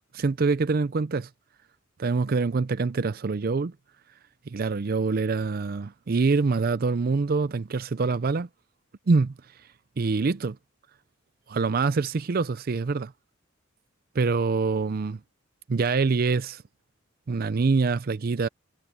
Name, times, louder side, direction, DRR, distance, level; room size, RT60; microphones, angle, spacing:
voice 1, 0.1-1.3 2.0-3.7 4.5-8.5 9.1-9.3 10.0-10.6 11.5-13.1 14.1-15.2 15.7-16.6 17.3-18.5, right 4 dB, 45° right, 0.5 m, -25 dB
head